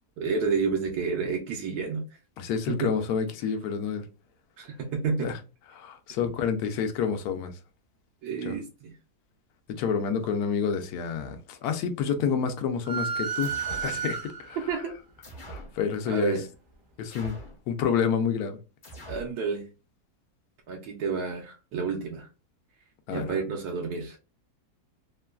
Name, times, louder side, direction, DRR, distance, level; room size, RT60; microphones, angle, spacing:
voice 1, 0.2-2.0 2.7-2.9 4.6-5.3 8.2-9.0 14.7-15.0 16.1-16.5 19.1-19.7 20.7-22.3 23.1-24.2, right 5 dB, 75° right, 1.1 m, -30 dB
voice 2, 2.4-4.0 5.2-5.3 5.7-7.5 8.4-8.6 9.8-14.6 15.4-16.4 17.0-17.4 17.7-18.6 23.1-23.3, left 6 dB, 75° left, 1.0 m, -28 dB
sound 1, 12.8-14.7, right 6 dB, 45° right, 0.7 m, -32 dB
sound 2, 13.4-13.9 15.2-15.8 17.1-17.6 18.8-19.3, right 1 dB, 40° left, 0.8 m, -43 dB
3.1 x 2.1 x 2.2 m
omnidirectional pair, 1.7 m